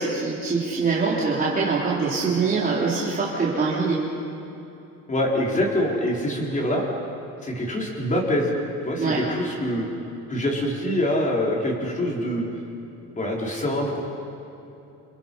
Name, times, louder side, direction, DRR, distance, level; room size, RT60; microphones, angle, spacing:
voice 1, 0.0-4.0 9.0-9.2, right 4 dB, 25° right, -7 dB, 3.8 m, -24 dB
voice 2, 5.1-6.8 7.4-8.5 8.8-9.8 10.3-12.4 13.2-14.0, left 1 dB, 25° left, -2 dB, 4.6 m, -25 dB
30.0 x 28.5 x 5.6 m, 2.9 s
cardioid pair, 155°, 33 cm